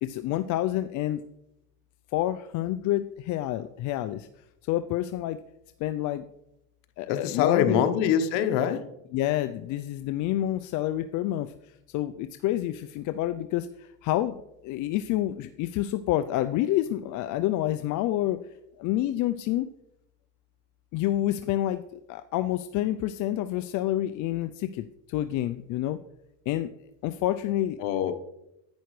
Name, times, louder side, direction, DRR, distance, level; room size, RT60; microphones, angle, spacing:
voice 1, 0.0-1.2 2.1-4.3 4.6-5.4 5.8-6.2 7.0-7.9 9.1-18.4 18.8-19.7 20.9-26.0 26.5-26.7 27.0-27.8, left 13 dB, 50° left, 10 dB, 0.5 m, -28 dB
voice 2, 7.1-8.8 27.8-28.1, left 9 dB, 85° left, 8 dB, 1.1 m, -24 dB
10.5 x 9.3 x 3.2 m, 0.85 s
cardioid pair, 125°, 38 cm